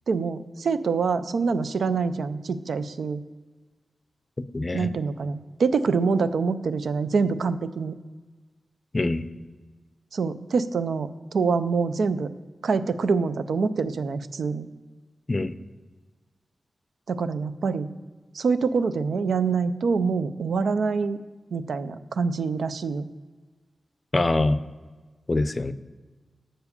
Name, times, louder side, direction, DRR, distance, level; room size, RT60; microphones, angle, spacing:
voice 1, 0.1-3.2 4.7-8.0 10.1-12.3 12.6-14.7 17.1-17.9 18.3-21.2 21.5-23.0, right 5 dB, 85° right, 12 dB, 0.4 m, -25 dB
voice 2, 4.5-4.9 8.9-9.2 15.3-15.5 24.1-24.6 25.3-25.7, left 2 dB, 35° left, 13 dB, 0.4 m, -24 dB
7.4 x 4.8 x 6.7 m, 1.3 s
cardioid pair, 65°, 0 cm